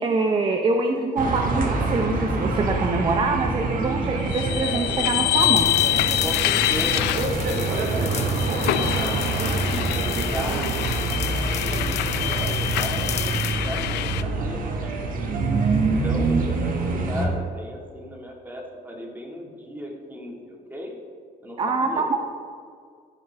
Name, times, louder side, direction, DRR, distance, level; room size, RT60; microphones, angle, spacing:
voice 1, 0.0-5.8 21.6-22.2, right 3 dB, 30° right, 4 dB, 0.6 m, -24 dB
sound 1, 1.2-17.3, right 3 dB, 55° right, 1.4 m, -26 dB
sound 2, 4.3-14.2, left 15 dB, 90° left, 0.4 m, -26 dB
sound 3, 5.4-13.6, left 8 dB, 40° left, 0.6 m, -36 dB
voice 2, 6.2-9.2 9.5-13.0 13.6-15.5 15.8-20.9 21.4-22.1, equal, 10° right, -1 dB, 1.9 m, -36 dB
15.5 x 5.4 x 3.4 m, 2.1 s
cardioid pair, 110°, 17 cm